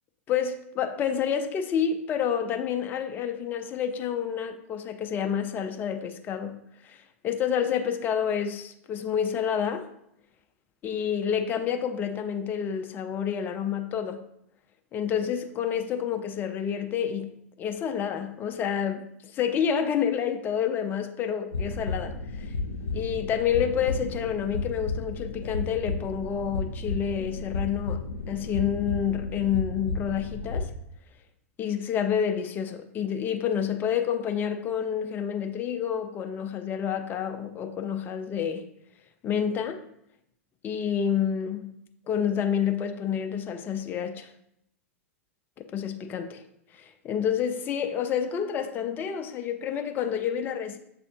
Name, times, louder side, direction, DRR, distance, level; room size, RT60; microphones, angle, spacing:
voice 1, 0.3-9.9 10.8-14.2 14.9-22.5 22.9-30.7 31.6-38.7 39.2-39.8 40.6-41.7 42.1-44.3 45.7-46.3 46.8-50.8, left 8 dB, 25° left, 0.4 m, -29 dB
sound 1, 21.5-30.6, left 3 dB, 80° left, 0.5 m, -33 dB
6.9 x 2.4 x 2.7 m
figure-of-eight pair, 100°, 8 cm